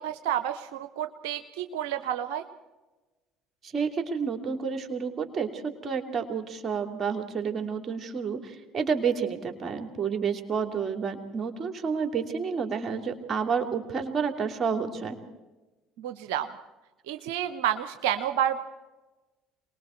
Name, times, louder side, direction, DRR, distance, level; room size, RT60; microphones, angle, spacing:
voice 1, 0.0-2.4 16.0-16.5 17.1-18.6, right 10 dB, 75° right, 9 dB, 0.9 m, -30 dB
voice 2, 3.6-15.2, right 6 dB, 40° right, 5 dB, 3.1 m, -30 dB
27.5 x 20.5 x 4.6 m, 1.2 s
hypercardioid pair, 65°, 0 cm